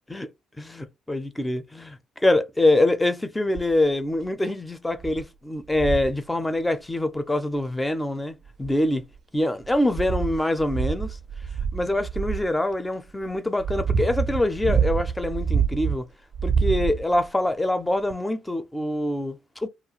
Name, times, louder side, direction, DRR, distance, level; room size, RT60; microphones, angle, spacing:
voice 1, 0.6-9.1 9.3-11.2 11.7-16.1 16.4-19.7, left 1 dB, 15° left, 0.6 m, -25 dB
sound 1, 3.5-3.9 4.4-4.5 5.0-5.2 5.7-6.2 7.6-7.7 8.5-9.1 9.6-12.5 13.2-16.0 16.3-17.3 18.1-18.2, right 6 dB, 55° right, 0.4 m, -26 dB
2.4 x 2.2 x 2.9 m
hypercardioid pair, 50°, 0 cm